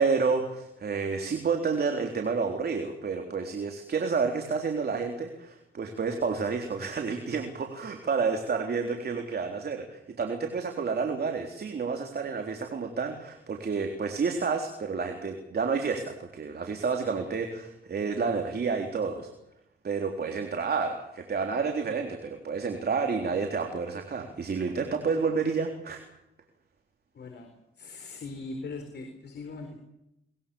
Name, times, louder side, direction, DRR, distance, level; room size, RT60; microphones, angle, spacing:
voice 1, 0.0-19.3 19.8-26.0, right 5 dB, 50° right, 4 dB, 3.8 m, -30 dB
voice 2, 27.1-29.8, left 3 dB, 55° left, 5 dB, 4.5 m, -40 dB
23.5 x 21.5 x 7.1 m, 0.84 s
cardioid pair, 85°, 21 cm